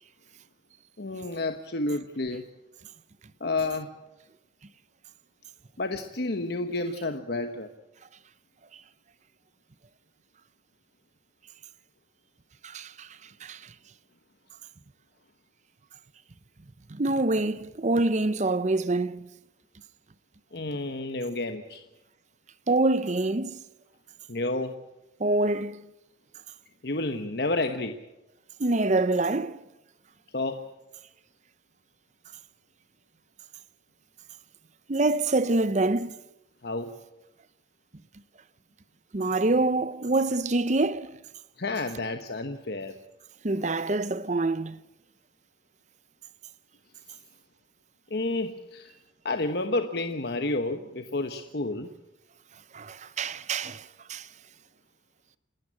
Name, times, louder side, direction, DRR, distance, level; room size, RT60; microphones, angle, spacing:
voice 1, 1.0-2.5 3.4-3.9 5.8-7.7 20.5-21.8 24.3-24.8 26.8-28.0 30.3-30.6 36.6-36.9 41.6-43.0 48.1-48.9 49.2-51.9, left 2 dB, 60° left, 1.1 m, -30 dB
voice 2, 12.6-13.1 13.4-13.7 16.9-19.3 22.7-23.6 25.2-25.9 28.6-29.6 34.9-36.1 39.1-41.2 43.4-44.8 52.7-54.3, right 2 dB, 40° right, 0.7 m, -26 dB
28.5 x 12.5 x 8.7 m
head